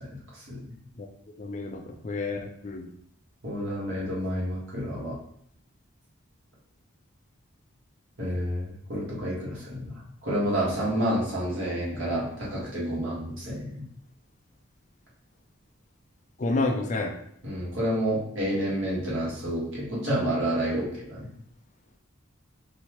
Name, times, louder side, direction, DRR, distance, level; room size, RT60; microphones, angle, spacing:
voice 1, 1.4-2.9 16.4-17.1, left 2 dB, 35° left, 4 dB, 0.4 m, -29 dB
voice 2, 3.4-5.1 8.2-13.8 17.4-21.3, equal, 70° right, -5 dB, 1.7 m, -29 dB
5.6 x 2.8 x 3.0 m, 0.68 s
head